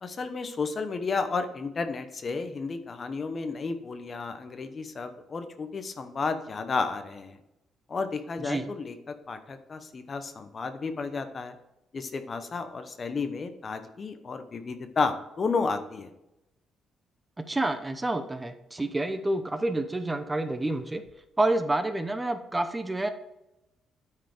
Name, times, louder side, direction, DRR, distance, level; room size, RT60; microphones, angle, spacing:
voice 1, 0.0-7.4 7.9-11.5 11.9-16.1, left 4 dB, 40° left, 9 dB, 0.9 m, -32 dB
voice 2, 8.4-8.7 17.4-21.0 21.4-23.1, right 2 dB, 15° right, 9 dB, 0.7 m, -28 dB
9.3 x 4.8 x 4.9 m, 0.91 s
cardioid pair, 90°, 0 cm